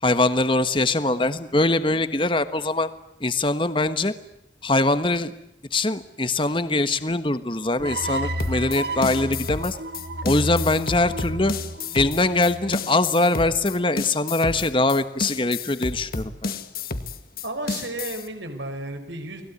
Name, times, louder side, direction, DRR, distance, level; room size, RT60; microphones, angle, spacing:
voice 1, 0.0-2.9 3.2-4.1 4.6-5.3 5.7-9.8 10.2-11.5 11.9-16.6, left 2 dB, 25° left, 11 dB, 1.3 m, -22 dB
sound 1, 7.8-13.0, equal, 60° right, 2.0 m, -32 dB
sound 2, 8.4-18.3, left 3 dB, 50° left, 1.8 m, -31 dB
voice 2, 17.4-19.4, right 2 dB, 85° right, 6 dB, 4.8 m, -33 dB
30.0 x 20.5 x 9.7 m, 0.81 s
head